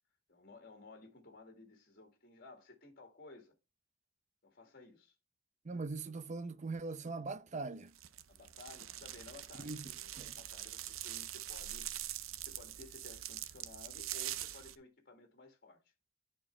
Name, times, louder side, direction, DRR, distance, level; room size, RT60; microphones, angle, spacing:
voice 1, 0.3-3.5 4.4-5.1 8.3-12.1 12.4-15.8, left 3 dB, 50° left, 2.0 m, -56 dB
voice 2, 5.6-7.9 9.6-9.8 10.1-10.3, right 3 dB, 35° right, 0.6 m, -41 dB
sound 1, 7.9-14.8, right 13 dB, 85° right, 0.6 m, -44 dB
10.0 x 4.5 x 3.3 m
head